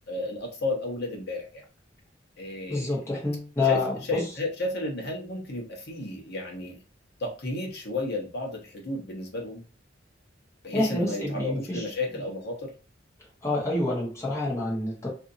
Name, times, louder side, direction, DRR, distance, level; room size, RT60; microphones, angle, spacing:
voice 1, 0.1-1.6 2.4-3.0 3.6-6.8 7.2-9.6 10.6-12.7, left 2 dB, 60° left, -1 dB, 0.9 m, -33 dB
voice 2, 2.7-4.2 10.7-11.8 13.4-15.1, left 2 dB, 15° left, -5 dB, 1.1 m, -27 dB
2.6 x 2.6 x 2.6 m, 0.35 s
head